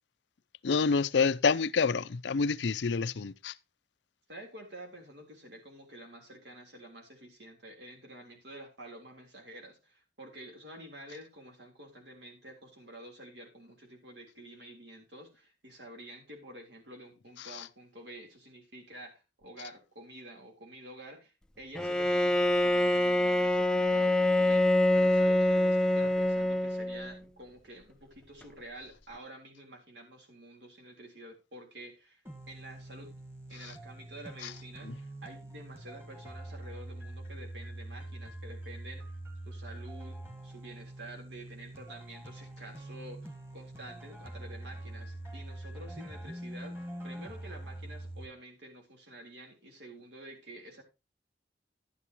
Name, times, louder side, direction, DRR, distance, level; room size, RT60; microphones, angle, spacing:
voice 1, 0.6-3.5 34.8-34.9, left 5 dB, 80° left, 0.5 m, -27 dB
voice 2, 4.3-32.2 32.5-33.2 33.5-39.0 39.4-40.2 40.4-50.8, right 1 dB, 75° right, 3.6 m, -49 dB
Bowed string instrument, 21.7-27.2, left 1 dB, 5° left, 0.4 m, -25 dB
sound 1, 32.2-48.3, right 1 dB, 15° right, 1.9 m, -44 dB
12.0 x 9.9 x 2.9 m
head